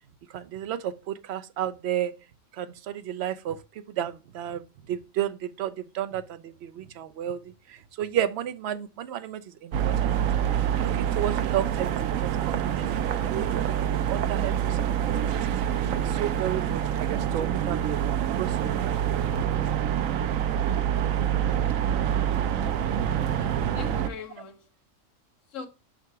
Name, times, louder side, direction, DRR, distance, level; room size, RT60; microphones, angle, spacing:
voice 1, 0.3-2.1 2.6-3.6 4.0-7.4 7.7-15.4 16.0-17.0 17.4-17.9 18.4-18.9, right 10 dB, 65° right, 0.8 m, -33 dB
sound 1, 9.7-24.1, right 9 dB, 85° right, 1.0 m, -26 dB
voice 2, 23.2-24.7 25.5-25.7, left 6 dB, 70° left, 1.3 m, -40 dB
5.5 x 3.9 x 4.7 m
omnidirectional pair, 1.4 m